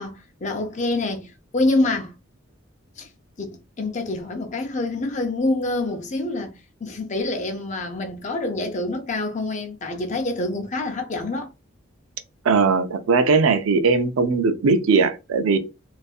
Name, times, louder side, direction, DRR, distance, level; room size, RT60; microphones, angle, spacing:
voice 1, 0.0-2.1 3.0-3.1 3.4-11.5, left 2 dB, 35° left, 0.5 m, -26 dB
voice 2, 12.5-15.6, right 4 dB, 90° right, 0.4 m, -19 dB
2.6 x 2.4 x 2.3 m
head